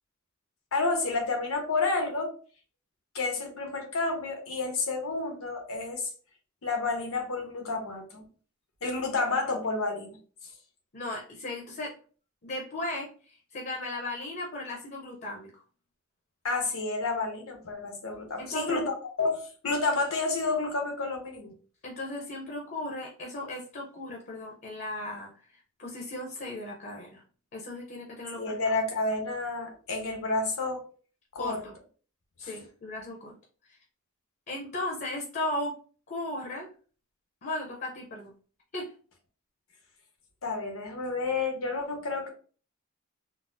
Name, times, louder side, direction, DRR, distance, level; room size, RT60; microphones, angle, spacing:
voice 1, 0.7-2.3 3.1-6.1 6.6-8.2 8.8-10.2 16.4-21.5 28.3-30.8 31.3-31.6 32.4-32.5 40.4-42.3, left 3 dB, 80° left, 0.9 m, -30 dB
voice 2, 10.9-11.9 12.4-15.5 18.4-18.8 21.8-25.3 25.8-27.2 27.5-28.6 31.4-31.7 32.4-33.4 33.7-33.8 34.5-35.7 36.1-36.7 37.4-38.3 38.7-38.9, left 1 dB, 50° left, 0.7 m, -36 dB
3.9 x 2.0 x 2.6 m
head